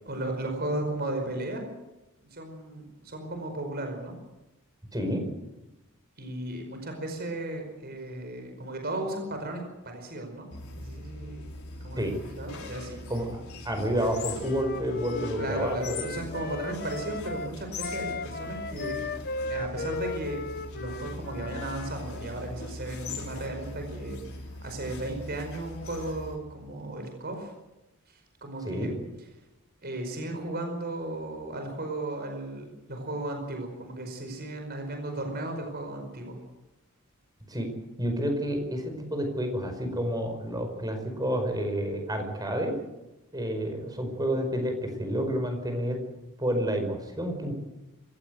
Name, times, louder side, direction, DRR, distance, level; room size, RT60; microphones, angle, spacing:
voice 1, 0.0-1.6 2.2-4.1 6.2-10.5 10.7-11.4 11.8-13.0 15.4-19.0 19.5-20.4 20.7-24.2 24.6-27.5 28.1-28.9 29.8-36.4, right 1 dB, 45° right, 4 dB, 5.0 m, -35 dB
voice 2, 4.9-5.2 12.0-12.1 13.1-13.4 13.6-16.0 28.6-28.9 37.5-37.7 38.0-42.7 43.3-46.0 46.4-47.5, equal, 15° right, 5 dB, 5.1 m, -29 dB
sound 1, 10.5-26.4, left 2 dB, 70° left, 5.4 m, -41 dB
Wind instrument woodwind instrument, 13.9-21.9, left 3 dB, 45° left, 0.8 m, -37 dB
26.0 x 16.0 x 8.1 m, 0.99 s
head